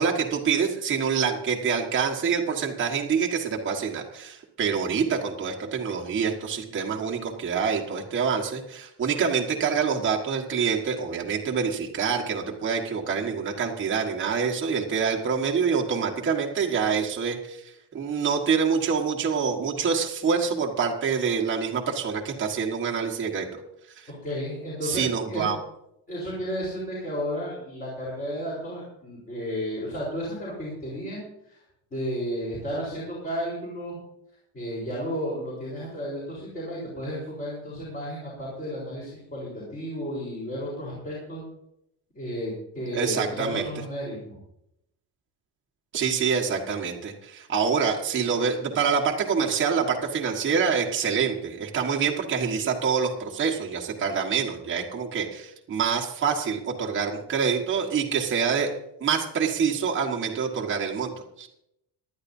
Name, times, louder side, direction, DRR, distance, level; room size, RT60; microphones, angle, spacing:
voice 1, 0.0-23.5 24.0-24.1 24.8-25.6 42.9-43.7 45.9-58.7 59.0-61.1 61.4-61.5, right 6 dB, 30° right, 0 dB, 1.5 m, -26 dB
voice 2, 24.1-25.5 26.1-31.6 31.9-34.0 34.5-41.4 42.2-44.4, equal, 20° left, -7 dB, 4.1 m, -33 dB
18.5 x 12.0 x 2.7 m, 0.79 s
cardioid pair, 180°, 42 cm